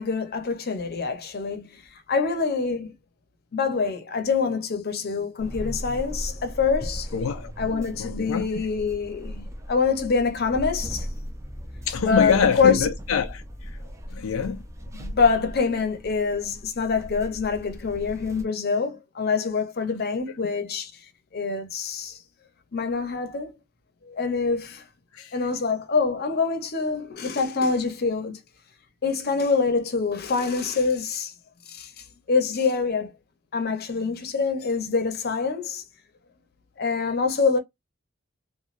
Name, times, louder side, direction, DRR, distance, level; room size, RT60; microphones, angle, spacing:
voice 1, 0.0-1.7 2.1-2.9 3.5-7.1 7.6-11.1 12.0-12.9 14.9-20.9 21.3-22.2 22.7-23.5 24.1-24.8 25.3-28.4 29.0-31.3 31.7-31.9 32.3-33.1 33.5-35.8 36.8-37.6, left 5 dB, 50° left, 0.7 m, -25 dB
sound 1, 5.4-18.5, equal, 15° right, 0.5 m, -37 dB
voice 2, 7.1-8.5 11.9-13.4 14.1-14.6 25.1-25.4, left 6 dB, 90° left, 0.4 m, -25 dB
3.1 x 2.2 x 2.4 m
head